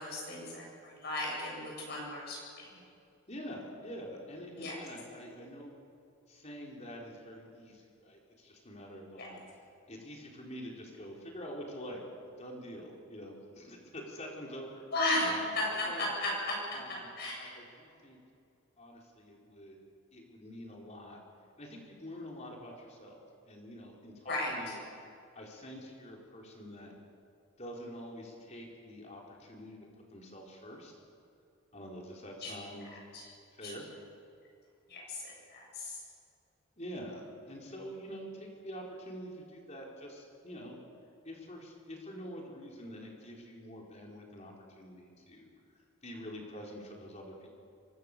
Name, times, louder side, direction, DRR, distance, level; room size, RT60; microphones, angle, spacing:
voice 1, 0.0-2.8 4.6-4.8 9.2-9.3 14.9-17.5 24.3-24.5 32.4-32.5 33.6-33.7 34.9-36.0, left 1 dB, 50° left, -2 dB, 7.7 m, -35 dB
voice 2, 3.3-5.7 6.3-9.4 9.9-12.0 12.4-14.8 15.2-15.6 15.9-16.1 16.7-18.2 18.8-19.8 20.1-21.2 21.6-24.8 25.3-26.9 27.6-29.8 30.1-30.9 31.7-32.9 33.6-33.8 36.8-40.8 41.2-45.5 46.0-47.5, equal, 30° left, -1 dB, 4.4 m, -46 dB
25.0 x 22.5 x 6.9 m, 2.5 s
head